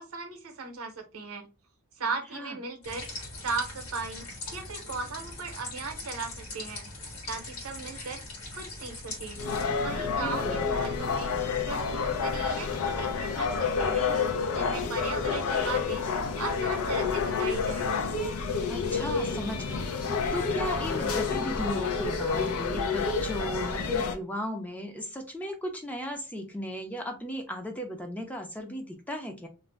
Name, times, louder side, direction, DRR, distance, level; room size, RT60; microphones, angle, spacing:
voice 1, 0.0-1.5 2.0-4.3 4.5-6.8 7.3-8.2 8.5-9.4 9.8-14.1 14.5-17.9, right 4 dB, 70° right, 5 dB, 0.7 m, -37 dB
sound 1, 2.8-9.6, left 2 dB, 70° left, 1.2 m, -41 dB
sound 2, 9.4-24.2, left 5 dB, 85° left, 0.6 m, -29 dB
voice 2, 10.2-10.6 18.7-29.5, equal, 5° left, 4 dB, 0.4 m, -36 dB
2.5 x 2.0 x 3.2 m, 0.31 s
head